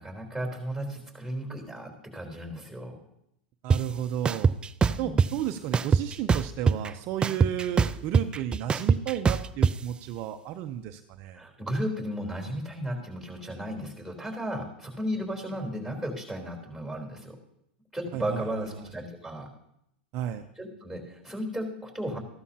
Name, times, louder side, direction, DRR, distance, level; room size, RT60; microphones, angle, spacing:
voice 1, 0.0-3.0 4.9-5.3 11.3-17.4 17.9-19.5 20.6-22.2, equal, 5° left, 0 dB, 3.7 m, -34 dB
voice 2, 3.6-4.5 5.0-11.4 18.1-18.9 20.1-20.4, right 11 dB, 45° right, 6 dB, 0.7 m, -33 dB
sound 1, 3.7-3.8 4.3-5.3 5.7-6.9 7.2-9.7, right 5 dB, 15° right, 0.3 m, -22 dB
14.5 x 12.5 x 2.9 m, 0.79 s
hypercardioid pair, 120°, 6 cm